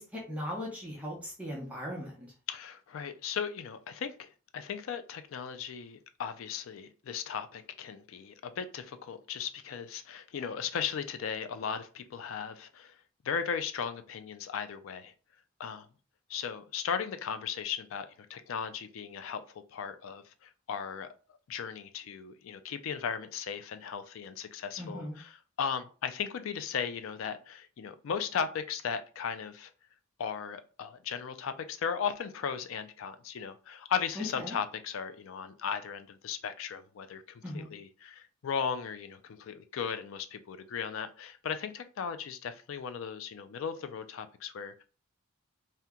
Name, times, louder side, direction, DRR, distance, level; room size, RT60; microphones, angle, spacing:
voice 1, 0.0-2.3 24.8-25.2 34.2-34.5 37.4-37.7, left 1 dB, 5° right, 0.7 m, -38 dB
voice 2, 2.5-13.0 13.2-15.1 15.6-15.9 16.3-21.1 21.5-29.7 30.2-44.8, left 7 dB, 75° left, 0.4 m, -37 dB
2.8 x 2.2 x 3.6 m
head